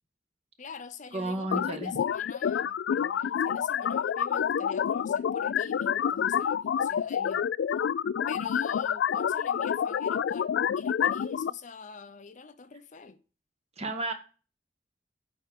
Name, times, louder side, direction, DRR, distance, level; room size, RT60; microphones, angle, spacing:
voice 1, 0.6-7.5 8.3-13.2, left 5 dB, 45° left, 0.7 m, -45 dB
voice 2, 1.1-1.9 13.8-14.1, right 2 dB, 35° right, 1.4 m, -32 dB
sound 1, 1.5-11.5, left 8 dB, 90° left, 0.3 m, -28 dB
7.7 x 4.7 x 6.7 m
head